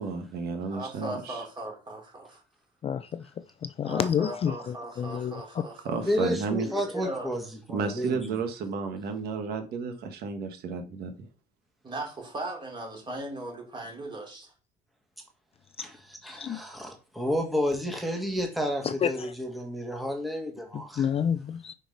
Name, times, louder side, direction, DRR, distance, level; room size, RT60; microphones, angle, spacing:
voice 1, 0.0-1.4 5.8-6.7 7.7-11.3, right 5 dB, 70° right, 1.3 m, -32 dB
voice 2, 0.7-2.4 3.8-6.0 6.6-7.3 11.8-14.5, right 1 dB, 30° right, 2.8 m, -38 dB
voice 3, 2.8-3.2 3.6-4.5 5.0-5.4 16.2-16.6 18.8-19.3 20.7-21.7, left 8 dB, 35° left, 0.4 m, -29 dB
voice 4, 6.0-7.4 7.7-8.2 15.8-21.1, equal, ahead, 1.5 m, -31 dB
5.0 x 4.5 x 5.2 m
cardioid pair, 110°, 17 cm